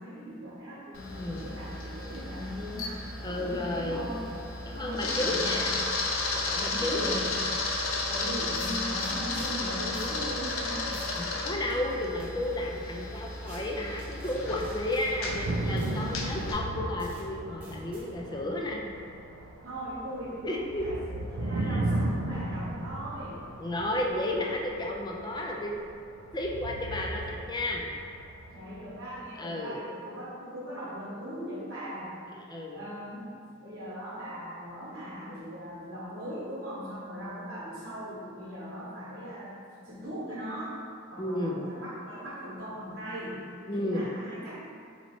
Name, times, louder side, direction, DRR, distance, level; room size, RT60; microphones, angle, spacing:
voice 1, 0.0-4.3 4.7-5.6 6.4-7.4 8.0-11.0 18.3-18.5 19.6-23.5 28.5-32.2 32.7-33.3 33.6-39.5 39.8-40.8 41.1-44.6, equal, 50° right, -8 dB, 1.1 m, -39 dB
Camera, 0.9-16.5, left 2 dB, 70° left, 0.6 m, -33 dB
voice 2, 3.2-4.2 4.7-5.8 6.3-7.2 11.2-18.8 20.4-20.9 21.6-21.8 23.6-25.7 26.3-27.9 29.4-29.8 31.4-31.6 32.5-32.9 41.2-41.6 43.7-44.1, left 1 dB, 20° left, -1 dB, 0.4 m, -33 dB
sound 1, 7.9-8.0 8.5-9.5 9.9-10.2 10.5-10.6 10.9-11.2 11.7-12.3 13.4-13.6 14.0-15.1 15.8-15.9 16.5-16.6 17.0-17.2 17.6-18.0, equal, 5° right, 1.0 m, -49 dB
sound 2, 14.4-29.2, right 1 dB, 70° right, 0.4 m, -36 dB
4.2 x 2.8 x 4.3 m, 2.3 s
head